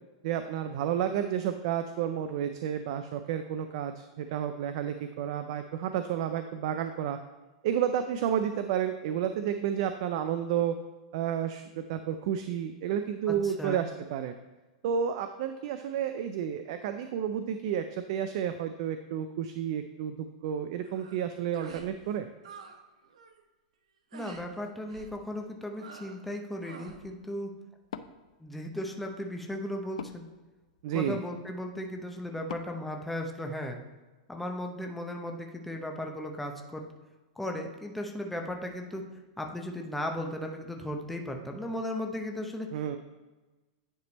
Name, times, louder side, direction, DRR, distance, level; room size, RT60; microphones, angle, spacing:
voice 1, 0.2-7.2 7.6-10.7 11.1-14.3 14.8-22.3 30.8-31.2 42.7-43.0, right 9 dB, 55° right, 9 dB, 0.4 m, -31 dB
voice 2, 13.3-13.8 24.1-27.5 28.4-30.3 30.9-33.8 34.3-36.8 37.4-39.1 39.4-42.8, left 1 dB, 5° left, 2 dB, 0.7 m, -36 dB
sound 1, 20.8-21.2 21.5-21.9 22.2-22.8 23.0-23.4 24.1-24.5 24.9-25.2 25.7-26.3 26.6-27.0, right 5 dB, 85° right, 0.8 m, -48 dB
Wood, 27.8-33.9, left 8 dB, 80° left, 0.4 m, -49 dB
9.7 x 3.3 x 4.1 m, 1.2 s
hypercardioid pair, 140°, 4 cm